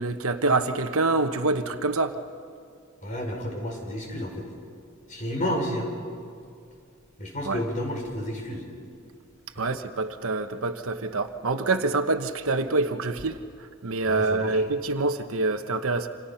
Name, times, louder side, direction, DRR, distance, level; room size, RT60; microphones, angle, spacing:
voice 1, 0.0-2.2 7.4-7.6 9.6-13.4 13.8-16.1, right 3 dB, 65° right, 8 dB, 1.1 m, -26 dB
voice 2, 3.0-4.5 5.1-5.9 7.2-8.6 14.1-14.6, equal, 35° left, 1 dB, 5.3 m, -31 dB
28.5 x 27.0 x 5.8 m, 2.3 s
head